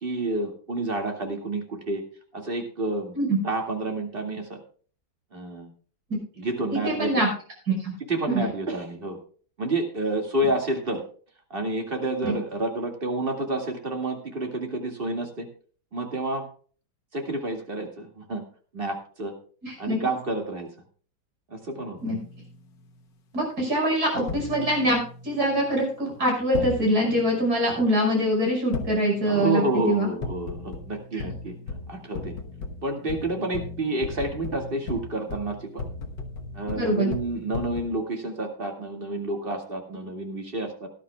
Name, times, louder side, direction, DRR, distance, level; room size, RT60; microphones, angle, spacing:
voice 1, 0.0-2.0 2.3-3.2 3.4-4.6 5.3-5.7 6.4-7.1 8.1-9.2 9.6-11.0 11.5-15.5 15.9-16.5 17.1-18.4 18.7-19.3 19.8-20.7 21.5-22.0 29.2-31.5 31.9-32.3 32.8-35.9 36.5-40.9, right 2 dB, 30° right, 3 dB, 2.3 m, -29 dB
voice 2, 6.7-7.3 7.7-7.9 8.3-8.4 12.2-12.3 19.6-20.0 22.0-22.2 23.3-30.1 36.8-37.1, right 1 dB, 50° right, 0 dB, 6.2 m, -24 dB
sound 1, 22.0-22.6 24.3-25.6 26.5-27.4 28.7-29.6 30.2-37.9, left 3 dB, 70° left, 1.8 m, -36 dB
18.0 x 11.5 x 2.3 m, 0.42 s
omnidirectional pair, 2.1 m